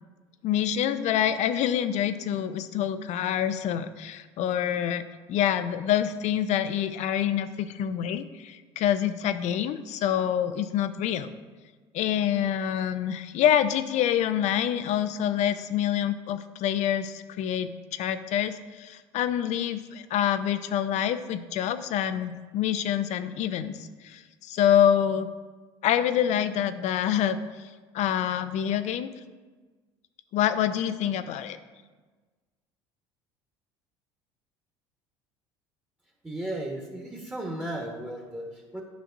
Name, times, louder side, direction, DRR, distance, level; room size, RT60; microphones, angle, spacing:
voice 1, 0.4-11.3 11.9-23.7 24.0-25.3 25.8-27.4 27.9-29.1 30.3-31.6, left 10 dB, 55° left, 12 dB, 0.5 m, -26 dB
voice 2, 36.2-38.8, right 1 dB, 10° right, -1 dB, 1.3 m, -35 dB
10.5 x 5.9 x 2.6 m, 1.3 s
hypercardioid pair, 70°, 14 cm